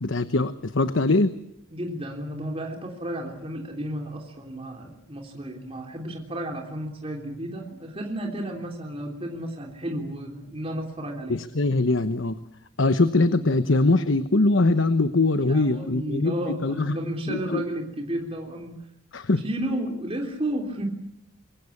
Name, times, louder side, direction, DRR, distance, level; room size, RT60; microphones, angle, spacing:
voice 1, 0.0-1.3 11.3-12.4 12.8-17.0 17.3-17.6 19.1-19.4, left 2 dB, 60° left, 11 dB, 1.0 m, -22 dB
voice 2, 1.7-11.4 15.5-18.8 19.4-20.9, right 1 dB, 25° right, 2 dB, 3.3 m, -32 dB
26.0 x 23.0 x 8.6 m, 0.78 s
head